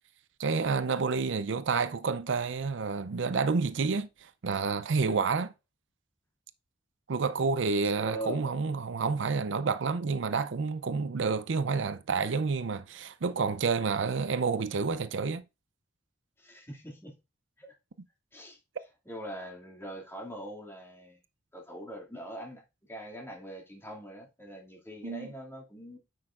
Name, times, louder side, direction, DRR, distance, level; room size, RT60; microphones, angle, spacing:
voice 1, 0.4-5.5 7.1-15.4 25.0-25.3, right 4 dB, 75° right, 0.5 m, -29 dB
voice 2, 7.8-8.7 16.4-17.2 17.6-17.7 18.3-18.6 19.1-21.2 21.5-22.6 22.9-26.0, right 1 dB, 10° left, 2.4 m, -42 dB
9.6 x 6.4 x 2.5 m
head